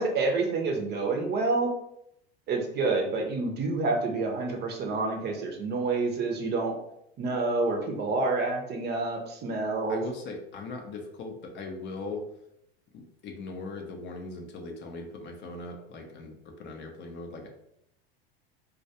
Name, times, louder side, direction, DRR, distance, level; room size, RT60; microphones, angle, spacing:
voice 1, 0.0-1.7 2.5-6.7 7.2-10.0, right 3 dB, 35° right, 2 dB, 0.6 m, -28 dB
voice 2, 9.9-12.3 12.9-17.5, left 3 dB, 35° left, 2 dB, 0.5 m, -39 dB
2.2 x 2.2 x 2.7 m, 0.76 s
hypercardioid pair, 90°, 31 cm